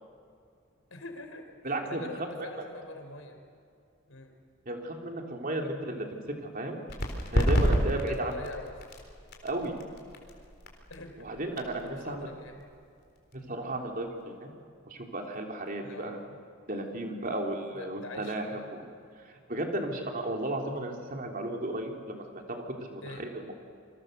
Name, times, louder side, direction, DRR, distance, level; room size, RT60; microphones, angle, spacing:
voice 1, 0.9-3.4 4.1-4.3 8.0-8.8 10.9-11.3 11.8-12.6 15.8-16.4 17.7-18.6 23.0-23.3, left 2 dB, 85° left, 5 dB, 4.4 m, -44 dB
voice 2, 1.6-2.3 4.7-6.2 6.5-6.8 7.3-8.3 9.4-9.8 11.2-12.3 13.3-14.5 14.9-16.2 16.7-18.8 19.2-22.6 22.9-23.5, right 1 dB, 45° right, 2 dB, 3.5 m, -34 dB
sound 1, 6.9-14.2, equal, 50° left, 4.1 m, -32 dB
28.5 x 24.5 x 6.8 m, 2.4 s
head